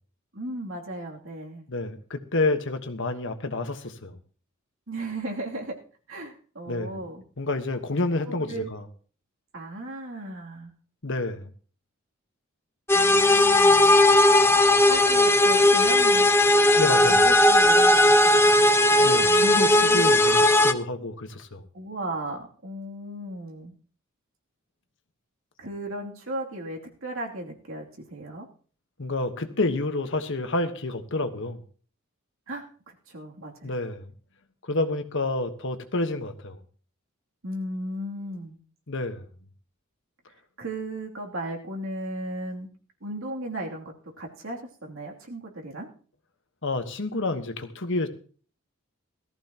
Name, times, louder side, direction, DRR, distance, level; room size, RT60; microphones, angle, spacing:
voice 1, 0.3-1.6 4.9-5.8 6.1-7.2 8.3-8.7 9.5-10.7 12.9-14.0 14.8-16.3 16.7-20.2 21.7-23.7 25.6-28.5 32.5-33.7 37.4-38.6 40.6-42.7 43.0-45.9, right 1 dB, 70° right, 0 dB, 2.9 m, -36 dB
voice 2, 1.7-4.2 6.7-7.0 7.4-8.8 11.0-11.5 16.8-17.3 19.0-21.6 29.0-31.6 33.6-34.1 34.6-36.6 38.9-39.2 46.6-48.1, left 2 dB, 65° left, 8 dB, 1.4 m, -29 dB
sound 1, 12.9-20.7, left 1 dB, 10° left, 0.7 m, -18 dB
18.0 x 14.0 x 3.0 m, 0.41 s
head